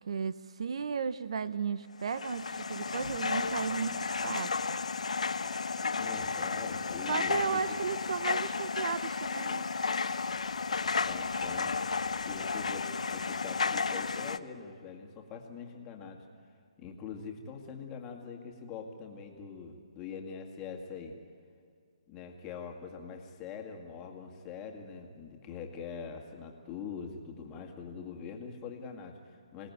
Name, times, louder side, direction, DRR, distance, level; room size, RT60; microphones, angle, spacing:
voice 1, 0.0-4.8 7.1-9.7, right 6 dB, 60° right, 15 dB, 0.7 m, -35 dB
sound 1, 2.0-14.4, left 4 dB, 85° left, 0.9 m, -33 dB
voice 2, 5.9-7.7 11.1-11.7 12.2-16.2 16.8-21.1 22.1-29.7, left 6 dB, 15° left, 2 dB, 2.0 m, -43 dB
26.5 x 18.0 x 9.5 m, 2.2 s
hypercardioid pair, 160°, 4 cm